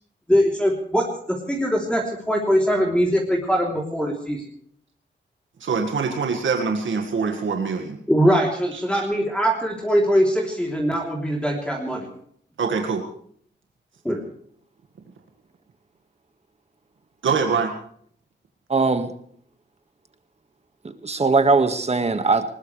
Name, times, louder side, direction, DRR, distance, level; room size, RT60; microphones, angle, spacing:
voice 1, 0.3-1.0 1.5-4.4 8.1-12.1 14.0-14.2, equal, 5° left, -1 dB, 3.3 m, -21 dB
voice 2, 5.6-8.0 8.7-8.8 12.6-13.1 17.2-17.7, right 5 dB, 85° right, 4 dB, 1.9 m, -24 dB
voice 3, 18.7-19.1 21.0-22.5, right 3 dB, 35° right, 8 dB, 1.8 m, -20 dB
20.5 x 20.0 x 3.4 m, 0.62 s
wide cardioid pair, 110°, 19 cm